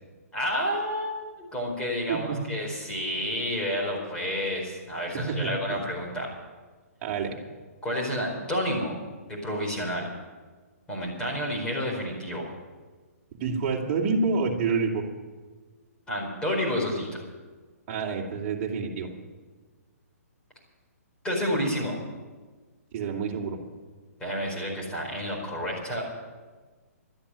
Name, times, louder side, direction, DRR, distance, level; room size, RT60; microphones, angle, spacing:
voice 1, 0.3-1.2 1.5-6.3 7.8-8.9 9.3-10.1 10.9-12.5 16.1-17.2 21.2-22.0 24.2-26.1, equal, 10° left, -3 dB, 4.7 m, -30 dB
voice 2, 2.1-2.4 5.1-5.8 7.0-7.4 13.4-15.1 17.9-19.1 22.9-23.6, right 4 dB, 35° right, -1 dB, 2.8 m, -28 dB
13.0 x 10.0 x 9.9 m, 1.4 s
hypercardioid pair, 150°, 8 cm